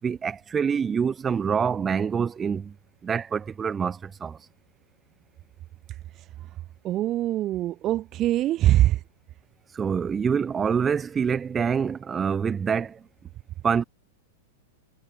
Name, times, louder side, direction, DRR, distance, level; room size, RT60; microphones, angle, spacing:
voice 1, 0.0-2.7 3.0-4.4 9.7-13.0 13.6-13.8, right 6 dB, 20° right, 5.2 m, -26 dB
voice 2, 6.8-9.0, right 14 dB, 35° right, 4.1 m, -23 dB
hypercardioid pair, 120°, 0 cm